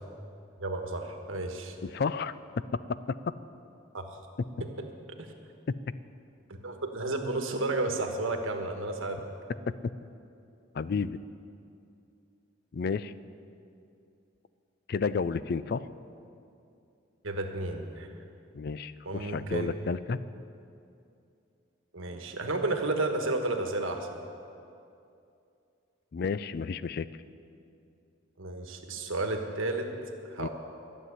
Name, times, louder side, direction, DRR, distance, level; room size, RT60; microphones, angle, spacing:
voice 1, 0.6-1.8 3.9-4.2 4.6-4.7 5.2-5.3 6.6-9.2 17.2-18.1 19.0-19.7 21.9-24.2 28.4-29.9 30.3-30.5, right 2 dB, 90° right, 4 dB, 1.3 m, -32 dB
voice 2, 1.8-2.3 3.3-3.4 10.7-11.2 12.7-13.1 14.9-15.9 18.5-20.2 26.1-27.1 30.4-30.5, left 5 dB, 50° left, 16 dB, 0.4 m, -31 dB
12.5 x 7.4 x 9.7 m, 2.6 s
head